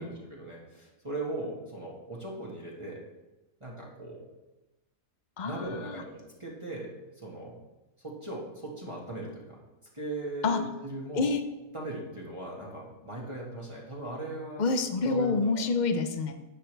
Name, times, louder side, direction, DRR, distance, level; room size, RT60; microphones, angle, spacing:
voice 1, 0.0-3.0 3.6-4.3 5.4-6.1 6.4-7.6 8.0-9.6 9.9-11.3 11.7-14.6 15.0-15.7, right 2 dB, 20° right, -4 dB, 1.8 m, -38 dB
voice 2, 5.4-6.0 10.4-10.6 11.1-11.4 14.6-16.3, left 4 dB, 40° left, 8 dB, 0.7 m, -27 dB
10.5 x 8.2 x 3.4 m, 1.1 s
omnidirectional pair, 1.5 m